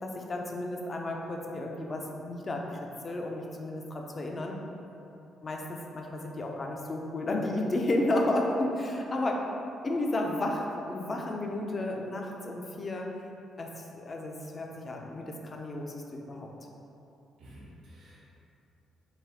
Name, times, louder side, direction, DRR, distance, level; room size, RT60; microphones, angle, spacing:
voice 1, 0.0-2.8 3.0-4.6 5.4-9.4 9.8-13.1 13.6-16.5, left 1 dB, 35° left, 1 dB, 0.5 m, -32 dB
voice 2, 17.4-18.3, equal, 75° right, -8 dB, 0.7 m, -50 dB
3.9 x 2.5 x 4.1 m, 2.9 s
cardioid pair, 90°, 0 cm